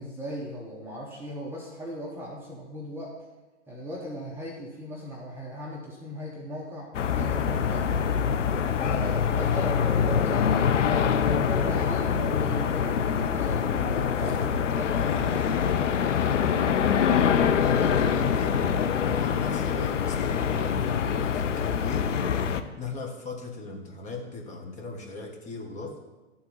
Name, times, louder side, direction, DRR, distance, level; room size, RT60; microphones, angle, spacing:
voice 1, 0.0-3.2 3.7-7.9 8.8-16.5, equal, 5° right, -4 dB, 1.2 m, -38 dB
sound 1, 6.9-22.6, left 7 dB, 80° left, 0.8 m, -25 dB
voice 2, 17.6-18.7 19.0-22.1 22.7-26.0, left 4 dB, 20° left, 0 dB, 1.5 m, -38 dB
12.0 x 4.3 x 5.6 m, 1.1 s
hypercardioid pair, 125°, 36 cm